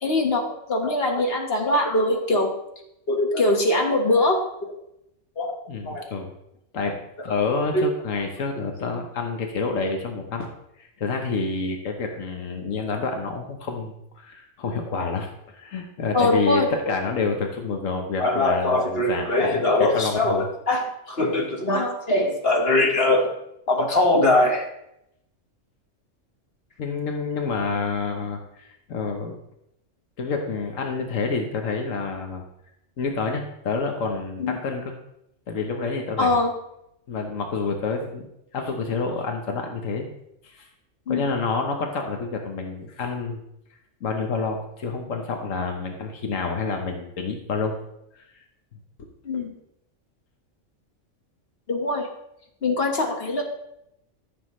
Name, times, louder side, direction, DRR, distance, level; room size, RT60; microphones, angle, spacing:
voice 1, 0.0-2.5 3.1-4.7 5.4-5.6 5.8-6.0 7.7-7.9 16.1-17.0 18.2-23.3 23.7-24.7 34.4-34.6 36.2-36.5 41.1-41.3 49.2-49.5 51.7-52.1 52.6-53.4, left 2 dB, 50° left, 1 dB, 1.6 m, -22 dB
voice 2, 5.7-6.3 6.7-10.5 10.8-20.4 26.8-29.4 30.2-32.4 33.0-34.9 35.5-36.4 37.1-38.3 38.5-40.1 40.4-40.7 41.1-43.4 44.0-47.8 48.2-48.3, left 4 dB, 90° left, 3 dB, 1.4 m, -28 dB
13.5 x 6.8 x 3.1 m, 0.80 s
omnidirectional pair, 1.3 m